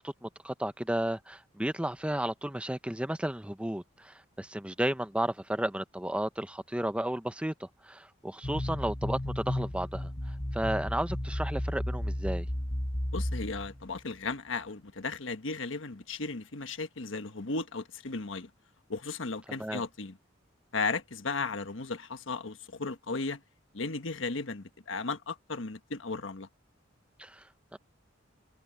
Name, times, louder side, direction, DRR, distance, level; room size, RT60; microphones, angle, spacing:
voice 1, 0.0-10.1 10.5-12.5 19.6-19.8 27.2-27.4 27.7-27.8, right 1 dB, 5° right, 0.7 m, -33 dB
sound 1, 8.4-14.0, left 1 dB, 25° left, 1.4 m, -33 dB
voice 2, 13.1-18.5 18.9-20.2 20.7-23.4 23.7-26.5, left 3 dB, 80° left, 1.4 m, -35 dB
head